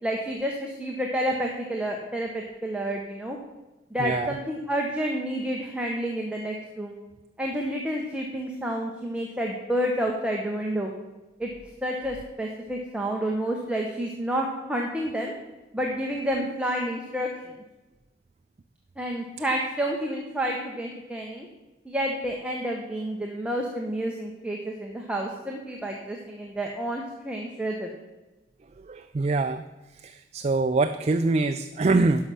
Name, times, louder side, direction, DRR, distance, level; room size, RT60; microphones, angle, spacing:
voice 1, 0.0-3.4 3.9-7.0 7.4-10.9 11.4-11.5 11.8-15.3 15.7-17.3 19.0-21.5 21.8-27.9, right 1 dB, 5° right, -1 dB, 0.8 m, -29 dB
voice 2, 4.0-4.4 28.8-29.6 29.9-32.2, right 3 dB, 35° right, 8 dB, 0.4 m, -24 dB
11.5 x 5.6 x 6.2 m, 1.1 s
head